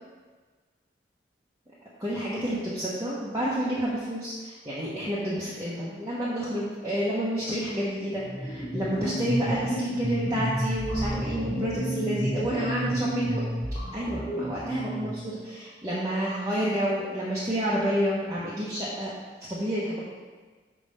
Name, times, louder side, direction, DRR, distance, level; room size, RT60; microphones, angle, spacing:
voice 1, 2.0-13.4 13.9-19.1 19.5-20.0, right 1 dB, 20° right, -9 dB, 0.9 m, -29 dB
sound 1, 8.2-15.3, equal, 35° left, 1.4 m, -31 dB
5.2 x 4.3 x 5.5 m, 1.4 s
head